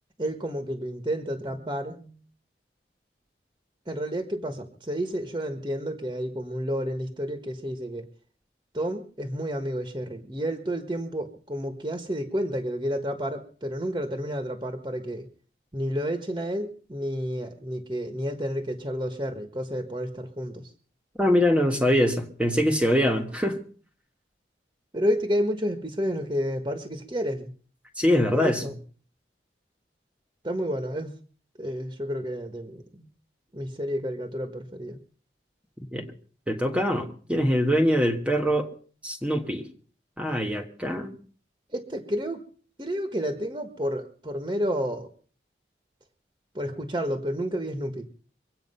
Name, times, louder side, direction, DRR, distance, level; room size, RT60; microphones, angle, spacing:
voice 1, 0.2-2.2 3.9-8.1 8.7-15.3 15.7-20.7 24.9-27.5 28.3-28.7 30.4-31.1 31.6-33.1 33.5-35.0 41.7-42.4 42.8-45.1 46.5-48.1, equal, 20° right, 1.4 m, -30 dB
voice 2, 21.2-23.6 28.0-28.6 35.9-36.1 36.5-38.7 39.0-39.7 40.2-41.2, equal, 5° right, 1.4 m, -23 dB
24.0 x 8.8 x 5.6 m
head